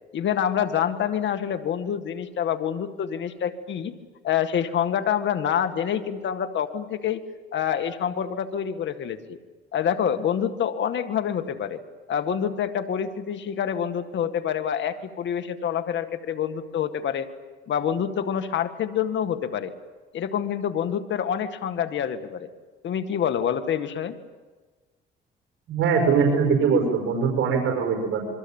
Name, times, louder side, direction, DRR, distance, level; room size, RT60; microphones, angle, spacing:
voice 1, 0.1-3.9 4.2-7.2 7.5-9.4 9.7-11.8 12.1-17.3 17.7-19.7 20.1-22.5 22.8-24.2, left 8 dB, 70° left, 8 dB, 2.0 m, -27 dB
voice 2, 25.7-28.2, right 5 dB, 80° right, 3 dB, 5.7 m, -22 dB
27.5 x 23.5 x 9.0 m, 1.3 s
cardioid pair, 90°, 20 cm